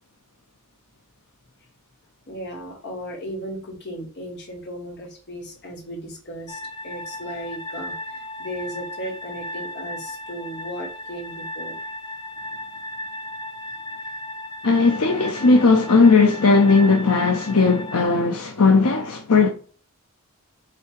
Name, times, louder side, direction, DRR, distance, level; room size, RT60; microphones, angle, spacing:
voice 1, 2.3-11.8, equal, 50° left, 1.9 m, -36 dB
sound 1, 6.5-18.0, left 1 dB, 20° left, 0.6 m, -36 dB
voice 2, 14.6-19.5, left 4 dB, 75° left, 0.8 m, -17 dB
7.7 x 2.8 x 4.7 m
head